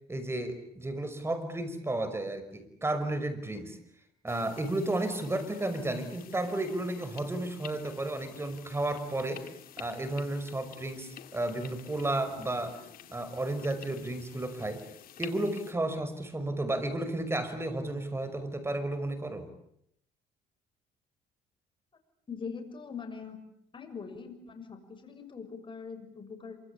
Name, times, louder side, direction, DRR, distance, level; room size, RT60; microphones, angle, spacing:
voice 1, 0.1-3.8 4.2-12.8 13.1-14.9 15.2-19.5, right 2 dB, 15° right, 9 dB, 5.8 m, -33 dB
sound 1, 4.3-15.7, left 10 dB, 60° left, 2.8 m, -50 dB
voice 2, 22.3-23.4 23.7-26.6, left 5 dB, 30° left, 6 dB, 6.6 m, -42 dB
27.5 x 25.5 x 8.6 m, 0.71 s
cardioid pair, 110°, 17 cm